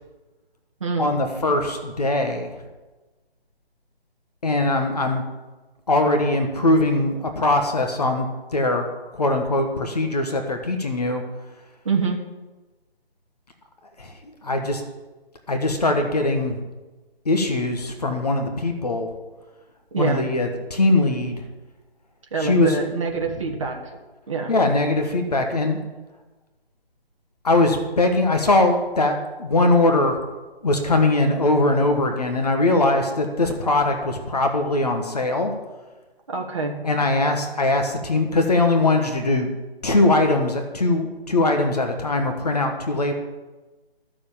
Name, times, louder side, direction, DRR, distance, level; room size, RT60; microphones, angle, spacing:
voice 1, 1.0-2.5 4.4-5.2 5.9-8.3 8.5-8.8 9.1-11.2 14.0-14.1 14.4-14.8 15.5-16.6 17.2-19.1 20.0-21.4 22.4-22.8 24.5-25.8 27.4-30.2 30.6-35.5 36.8-39.5 39.8-43.1, left 2 dB, 40° left, 5 dB, 1.3 m, -21 dB
voice 2, 11.8-12.2 19.9-20.3 22.3-23.9 24.3-24.5 36.3-36.8, right 4 dB, 30° right, 1 dB, 1.6 m, -25 dB
12.5 x 6.9 x 7.2 m, 1.2 s
figure-of-eight pair, 170°, 31 cm